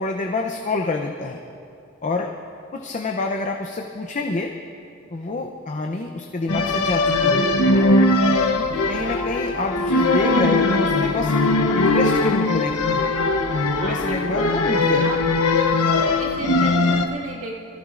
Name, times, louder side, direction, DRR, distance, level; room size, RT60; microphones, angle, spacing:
voice 1, 0.0-1.4 2.0-2.3 2.7-4.5 5.1-7.9 8.6-11.3 11.7-13.1 13.8-15.1, left 3 dB, 35° left, 2 dB, 0.6 m, -27 dB
sound 1, 6.5-17.1, left 2 dB, 90° left, 0.9 m, -20 dB
voice 2, 13.8-14.5 15.0-15.2 15.9-17.6, right 2 dB, 70° right, -4 dB, 1.8 m, -33 dB
22.5 x 15.0 x 2.5 m, 2.5 s
head